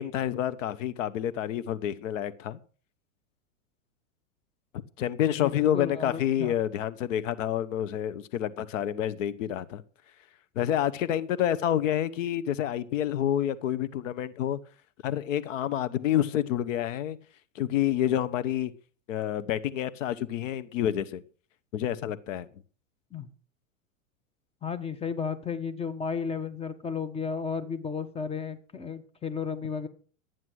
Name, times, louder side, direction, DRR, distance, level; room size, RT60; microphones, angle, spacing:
voice 1, 0.0-2.6 5.0-9.8 10.5-14.6 15.0-17.2 17.5-18.7 19.1-21.2 21.7-22.5, left 11 dB, 70° left, 1.0 m, -28 dB
voice 2, 5.4-6.5 23.1-23.3 24.6-29.9, left 6 dB, 15° left, 1.2 m, -33 dB
12.5 x 9.2 x 6.3 m
hypercardioid pair, 125°, 40 cm